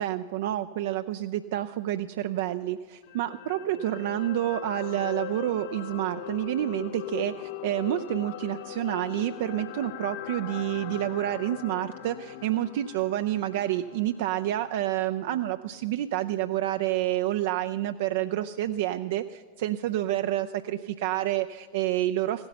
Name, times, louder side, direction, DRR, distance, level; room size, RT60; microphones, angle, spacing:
voice 1, 0.0-22.5, right 13 dB, 55° right, 9 dB, 0.4 m, -29 dB
sound 1, 3.0-15.3 15.7-15.8, left 12 dB, 50° left, 0.5 m, -40 dB
15.5 x 9.6 x 7.1 m, 1.4 s
figure-of-eight pair, 90°, 0 cm